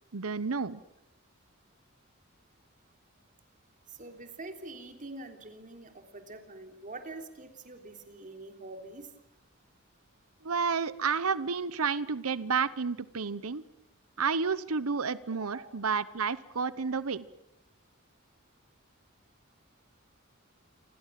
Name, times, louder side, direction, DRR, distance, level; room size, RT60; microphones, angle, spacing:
voice 1, 0.1-0.8 10.4-13.6 14.2-17.3, right 5 dB, 85° right, 17 dB, 0.9 m, -30 dB
voice 2, 3.9-9.1 15.5-15.7, right 2 dB, 40° right, 6 dB, 3.4 m, -45 dB
28.5 x 25.5 x 7.6 m, 0.87 s
head